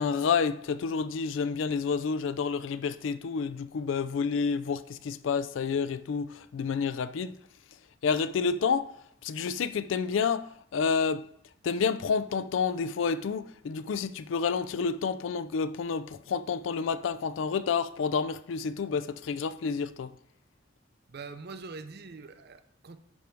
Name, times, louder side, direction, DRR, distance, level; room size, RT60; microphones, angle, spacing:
voice 1, 0.0-7.3 8.0-8.9 9.2-11.2 11.6-20.1, left 5 dB, 80° left, 0.4 m, -29 dB
voice 2, 21.1-23.0, right 4 dB, 55° right, 0.6 m, -43 dB
10.0 x 3.4 x 4.6 m
head